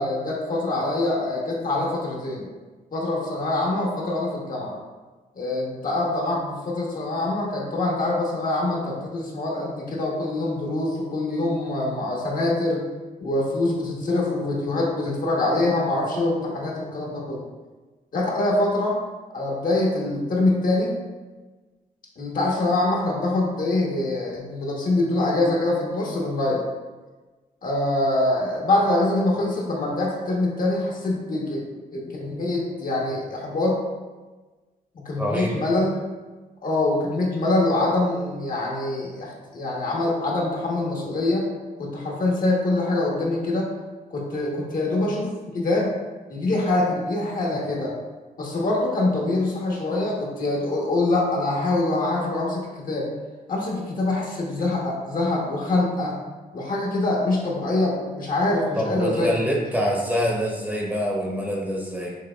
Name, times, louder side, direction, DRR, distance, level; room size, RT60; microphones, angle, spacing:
voice 1, 0.0-2.5 2.9-4.8 5.4-12.8 13.2-17.4 18.1-19.0 19.3-21.0 22.2-26.6 27.6-31.7 31.9-33.8 35.0-36.0 36.6-41.5 41.8-43.7 44.1-45.9 46.3-48.0 48.4-53.1 53.5-56.2 56.5-59.5, left 2 dB, 55° left, -3 dB, 1.2 m, -24 dB
voice 2, 35.2-35.6 58.7-62.2, equal, 10° right, -2 dB, 0.8 m, -25 dB
6.6 x 2.9 x 2.4 m, 1.3 s
cardioid pair, 85°, 16 cm